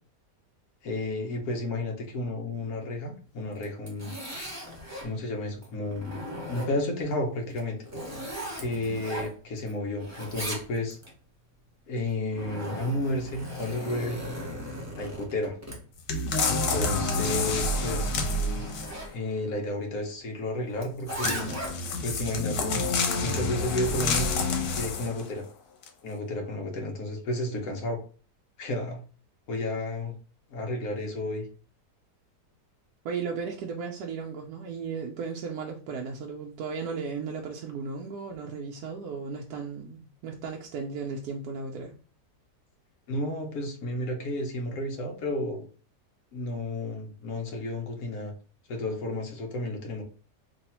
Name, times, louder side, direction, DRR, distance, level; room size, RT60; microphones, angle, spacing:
voice 1, 0.8-4.1 5.0-6.2 6.5-7.8 8.6-11.0 11.9-14.2 14.9-15.6 16.5-18.1 19.1-21.5 22.0-22.7 23.2-24.5 24.8-25.4 26.0-28.0 28.6-29.0 29.5-30.1 30.5-31.5 43.1-45.6 46.3-48.3 48.7-50.0, left 1 dB, 60° left, 2 dB, 1.3 m, -32 dB
Zipper (clothing), 3.5-5.1 5.6-7.0 7.5-9.7 10.0-11.1 12.0-19.1 20.8-22.0, equal, 15° right, 0.7 m, -38 dB
sound 1, 16.1-19.1 21.1-25.3 25.8-25.9, left 3 dB, 90° left, 1.4 m, -28 dB
voice 2, 33.0-41.9, right 5 dB, 75° right, 0 dB, 1.0 m, -35 dB
3.3 x 2.4 x 4.2 m, 0.38 s
omnidirectional pair, 1.8 m